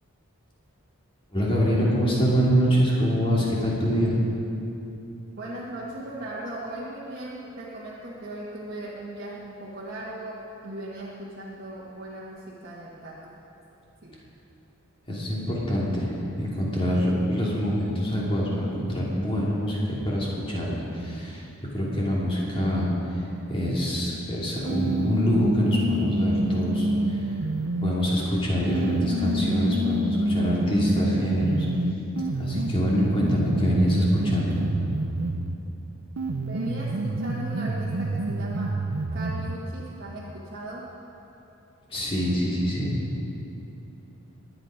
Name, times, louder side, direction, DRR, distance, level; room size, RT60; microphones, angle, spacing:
voice 1, 1.3-4.2 15.1-21.4 21.7-22.9 23.1-23.2 23.5-26.9 27.2-27.5 27.8-31.7 32.2-34.6 41.9-43.0, equal, 25° left, -5 dB, 2.8 m, -25 dB
voice 2, 5.4-13.3 14.0-14.2 36.5-38.7 39.1-40.9, right 1 dB, 45° right, -7 dB, 1.7 m, -38 dB
sound 1, 24.7-28.0 28.7-35.6 36.2-39.6, right 1 dB, 85° right, 0.7 m, -28 dB
22.0 x 9.1 x 5.1 m, 3.0 s
head